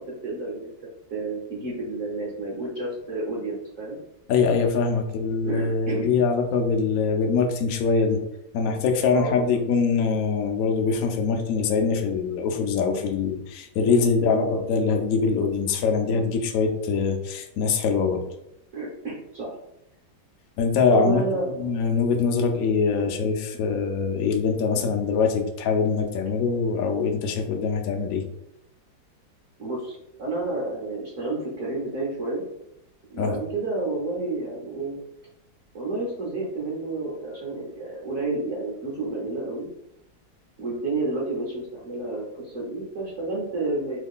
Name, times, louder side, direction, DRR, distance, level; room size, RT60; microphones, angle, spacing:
voice 1, 0.1-0.7 1.1-4.0 5.4-6.1 9.1-9.6 13.8-14.6 18.7-19.6 20.9-21.7 23.0-23.1 29.6-32.4 33.1-35.0 35.7-39.7 40.6-44.0, right 2 dB, 55° right, -4 dB, 0.9 m, -30 dB
voice 2, 4.3-8.2 8.5-18.2 20.6-21.2 21.6-28.2 33.2-33.4, left 5 dB, 75° left, 4 dB, 0.8 m, -23 dB
3.1 x 2.3 x 3.6 m, 0.81 s
omnidirectional pair, 2.0 m